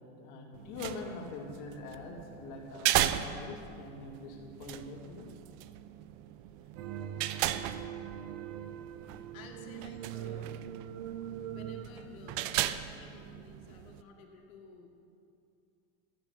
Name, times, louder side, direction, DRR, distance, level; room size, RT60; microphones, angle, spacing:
voice 1, 0.0-5.3, left 4 dB, 50° left, 0 dB, 2.6 m, -44 dB
sound 1, 0.5-14.0, right 13 dB, 45° right, 0.5 m, -37 dB
sound 2, 6.8-11.9, right 10 dB, 70° right, 1.0 m, -42 dB
voice 2, 9.3-10.7 11.5-14.9, left 4 dB, 85° left, 3 dB, 1.8 m, -53 dB
13.0 x 7.4 x 8.5 m, 2.6 s
supercardioid pair, 135°, 40 cm